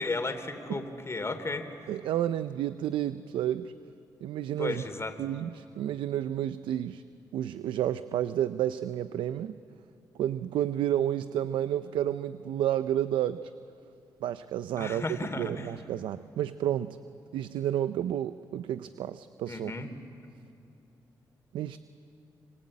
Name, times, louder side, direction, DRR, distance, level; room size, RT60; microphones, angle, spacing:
voice 1, 0.0-1.7 4.6-5.1 14.8-15.7 19.5-19.9, left 3 dB, 35° left, 7 dB, 3.2 m, -34 dB
voice 2, 1.9-3.7 4.2-4.8 5.2-7.0 7.3-9.6 10.2-13.5 14.2-17.0 17.3-19.7 21.5-21.8, right 11 dB, 85° right, 12 dB, 0.6 m, -31 dB
27.5 x 24.5 x 8.7 m, 2.7 s
supercardioid pair, 55°, 8 cm